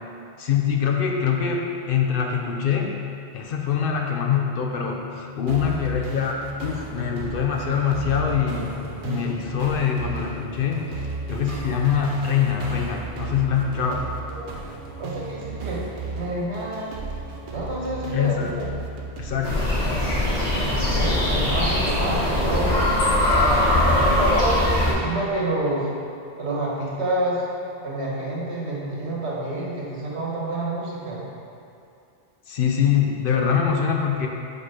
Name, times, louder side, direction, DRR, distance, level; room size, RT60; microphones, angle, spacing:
voice 1, 0.4-3.0 3.3-8.7 9.0-14.0 18.1-18.6 19.2-19.8 32.5-34.3, left 7 dB, 60° left, 1 dB, 0.7 m, -24 dB
sound 1, 5.5-21.4, right 4 dB, 55° right, 0.8 m, -34 dB
voice 2, 15.0-15.8 16.2-16.9 17.5-18.7 20.9-22.8 23.4-24.6 24.8-25.9 26.4-27.4 27.8-31.2, right 2 dB, 85° right, -5 dB, 1.5 m, -28 dB
sound 2, 19.4-24.9, left 1 dB, 85° left, 1.7 m, -21 dB
4.9 x 4.4 x 4.9 m, 2.5 s
omnidirectional pair, 1.1 m